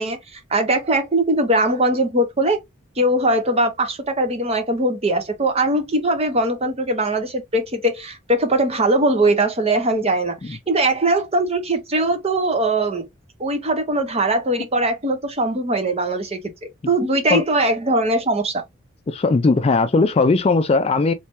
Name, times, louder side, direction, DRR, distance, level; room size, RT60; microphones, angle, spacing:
voice 1, 0.0-2.6 3.0-13.1 13.4-16.4 16.9-18.6, right 1 dB, 30° right, 0.7 m, -20 dB
voice 2, 19.1-21.1, left 3 dB, 30° left, 0.3 m, -18 dB
3.2 x 3.2 x 2.9 m
head